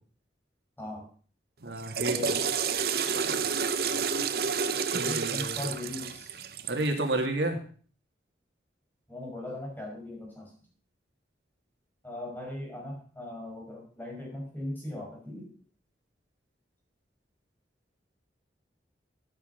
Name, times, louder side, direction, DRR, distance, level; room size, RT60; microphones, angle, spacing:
voice 1, 0.8-1.1 2.0-2.5 5.0-6.4 9.1-10.5 12.0-15.5, left 1 dB, 10° left, -1 dB, 5.4 m, -39 dB
voice 2, 1.6-2.2 3.1-3.4 4.9-5.6 6.7-7.6, right 2 dB, 80° right, 3 dB, 2.4 m, -30 dB
Water / Toilet flush, 1.7-6.9, right 6 dB, 55° right, 0.8 m, -30 dB
12.5 x 9.9 x 5.3 m, 0.43 s
head